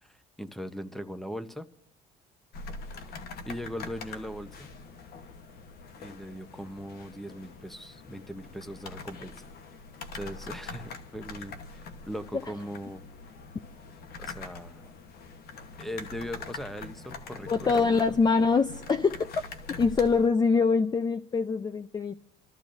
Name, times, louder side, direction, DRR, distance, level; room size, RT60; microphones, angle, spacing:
voice 1, 0.0-1.7 3.5-4.7 6.0-9.5 10.1-13.0 14.2-14.8 15.8-18.2, equal, ahead, 11 dB, 0.9 m, -39 dB
sound 1, 2.5-20.3, left 4 dB, 65° left, 1.2 m, -44 dB
voice 2, 17.5-19.3 19.8-22.1, left 4 dB, 25° left, 10 dB, 0.5 m, -24 dB
28.5 x 13.5 x 2.6 m, 0.69 s
cardioid pair, 110°, 17 cm